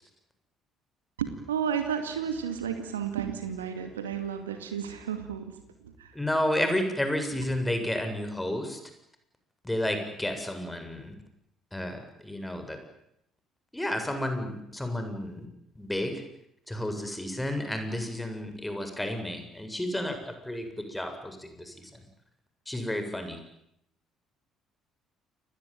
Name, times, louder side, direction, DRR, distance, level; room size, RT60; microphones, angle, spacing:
voice 1, 1.2-5.6 5.8-6.2, right 8 dB, 80° right, 7 dB, 2.3 m, -32 dB
voice 2, 6.1-8.8 9.6-11.1 11.7-12.8 13.7-15.5 15.8-16.1 16.7-21.9 22.7-23.4, left 1 dB, 10° left, 7 dB, 7.9 m, -31 dB
29.5 x 21.5 x 9.3 m, 0.77 s
figure-of-eight pair, 50°, 0 cm